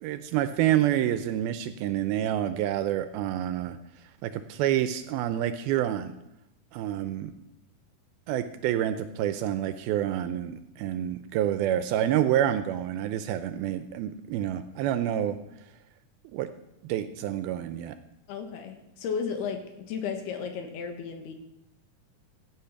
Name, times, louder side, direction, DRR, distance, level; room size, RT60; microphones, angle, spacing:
voice 1, 0.0-3.8 4.2-6.1 6.7-7.3 8.3-15.4 16.3-16.5 16.9-18.0, right 11 dB, 80° right, 10 dB, 2.3 m, -28 dB
voice 2, 18.3-21.3, left 6 dB, 75° left, 5 dB, 3.4 m, -34 dB
15.0 x 8.9 x 5.8 m, 0.85 s
omnidirectional pair, 4.7 m